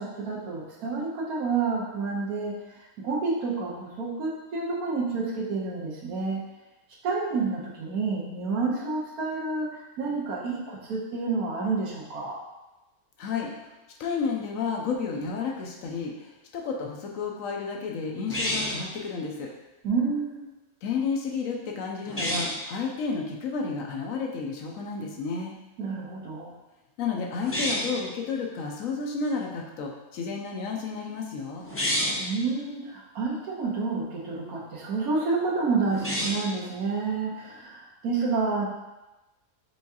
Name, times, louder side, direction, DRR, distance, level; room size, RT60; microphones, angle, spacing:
voice 1, 0.0-2.6 3.0-6.4 7.0-12.4 19.8-20.5 25.8-26.5 32.2-38.6, right 4 dB, 75° right, -3 dB, 1.3 m, -29 dB
voice 2, 13.2-13.5 14.0-19.5 20.8-25.5 27.0-31.6, left 5 dB, 70° left, 0 dB, 0.9 m, -31 dB
sound 1, 18.3-18.9 22.0-22.6 27.4-28.0 31.6-32.3 35.9-36.5, equal, 20° left, 0.4 m, -29 dB
4.5 x 3.5 x 2.8 m, 1.0 s
omnidirectional pair, 1.6 m